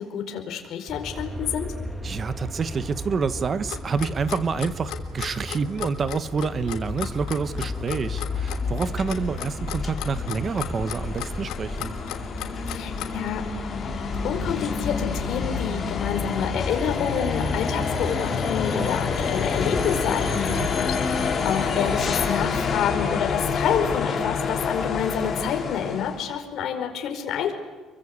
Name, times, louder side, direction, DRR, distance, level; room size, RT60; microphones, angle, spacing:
voice 1, 0.1-1.7 12.6-13.4 14.2-27.5, left 8 dB, 55° left, 3 dB, 4.7 m, -28 dB
Aircraft, 0.9-17.1, equal, 5° right, 2.2 m, -38 dB
voice 2, 2.0-11.9 20.3-20.7, right 5 dB, 30° right, 13 dB, 1.1 m, -28 dB
Clock, 3.7-13.3, left 13 dB, 75° left, 3.1 m, -35 dB
sound 1, 6.5-26.2, left 5 dB, 25° left, 5.0 m, -28 dB
29.5 x 23.5 x 8.3 m, 1.3 s
cardioid pair, 140°, 0 cm